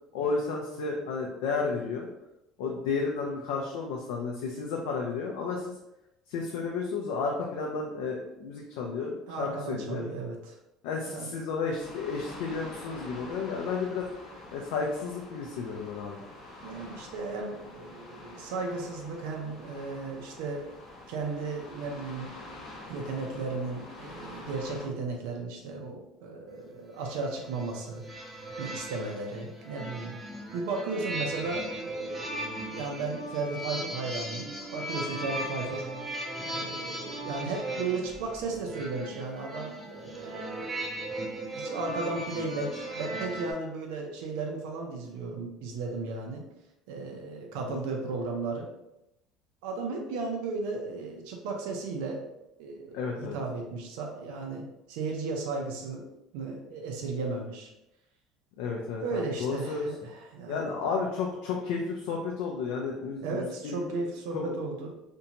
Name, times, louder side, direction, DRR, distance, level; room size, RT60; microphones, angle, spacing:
voice 1, 0.1-2.1 2.6-5.7 6.3-10.0 10.8-14.1 14.5-16.2 47.7-47.8 52.9-53.4 58.6-59.9 60.5-63.9 64.3-64.5, left 4 dB, 85° left, -1 dB, 0.4 m, -32 dB
voice 2, 9.3-10.6 11.1-11.3 16.6-20.6 21.1-22.3 22.9-28.0 28.6-30.2 30.5-35.9 36.4-40.8 41.4-46.4 46.9-48.7 49.6-52.2 52.6-56.0 56.3-57.7 59.0-60.7 63.2-64.9, right 3 dB, 80° right, 1 dB, 0.5 m, -35 dB
sound 1, 11.8-24.9, left 2 dB, 35° left, 0.6 m, -46 dB
sound 2, 27.0-43.5, right 1 dB, 5° right, 0.4 m, -37 dB
2.6 x 2.2 x 2.8 m, 0.89 s
cardioid pair, 170°, 0 cm